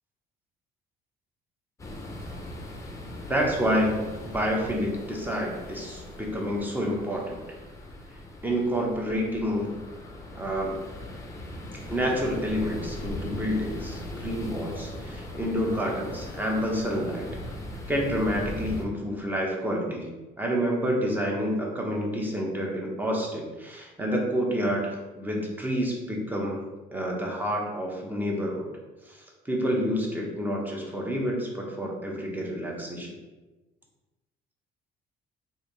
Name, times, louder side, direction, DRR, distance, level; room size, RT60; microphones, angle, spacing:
sound 1, 1.8-18.9, left 1 dB, 20° left, 0.6 m, -39 dB
voice 1, 3.3-7.4 8.4-9.8 10.3-10.8 11.9-17.3 17.9-20.1 20.4-26.6 26.9-28.7 29.0-33.1, equal, 10° right, -1 dB, 0.8 m, -28 dB
3.1 x 2.7 x 3.9 m, 1.2 s
cardioid pair, 110°, 17 cm